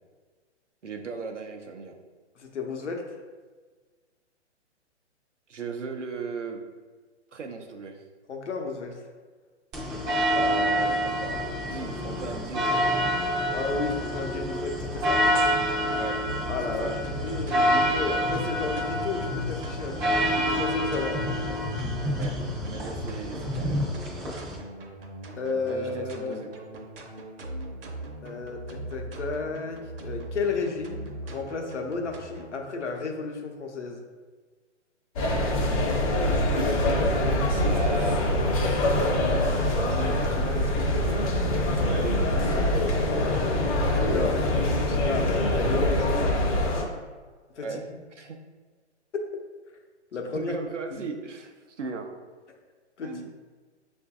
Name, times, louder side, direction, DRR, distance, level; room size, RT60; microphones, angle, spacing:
voice 1, 0.8-1.9 5.5-6.6 7.3-8.0 10.3-13.0 16.0-16.2 16.8-16.9 22.2-22.3 22.6-23.8 25.7-26.6 36.7-38.3 38.9-41.2 41.7-44.3 47.6-48.4 50.3-52.1 53.0-53.3, right 4 dB, 90° right, 3 dB, 0.7 m, -37 dB
voice 2, 2.4-3.0 8.3-9.0 13.5-15.2 16.5-21.2 25.4-26.4 28.2-34.0 42.0-42.1 43.4-43.8 44.1-44.4 44.8-46.3 47.5-47.8 49.1-49.2 50.1-50.5 50.9-51.0 53.0-53.3, left 4 dB, 80° left, 3 dB, 0.8 m, -33 dB
sound 1, 9.7-24.6, equal, 10° right, 0.4 m, -27 dB
sound 2, 16.2-32.6, right 1 dB, 50° right, 0.8 m, -41 dB
sound 3, 35.2-46.8, left 1 dB, 30° left, 0.6 m, -24 dB
6.6 x 2.6 x 2.3 m, 1.4 s
figure-of-eight pair, 130°, 35 cm